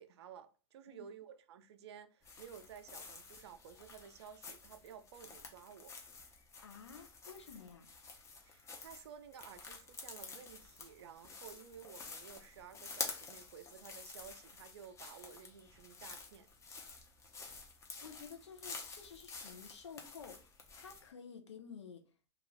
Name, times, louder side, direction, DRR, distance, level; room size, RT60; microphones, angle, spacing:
voice 1, 0.0-5.9 8.4-16.5, right 8 dB, 75° right, 0.4 m, -54 dB
sound 1, 2.2-21.1, left 4 dB, 20° left, 0.6 m, -50 dB
voice 2, 6.6-7.9 18.0-22.1, left 6 dB, 85° left, 0.6 m, -52 dB
2.4 x 2.3 x 3.2 m
hypercardioid pair, 110°, 14 cm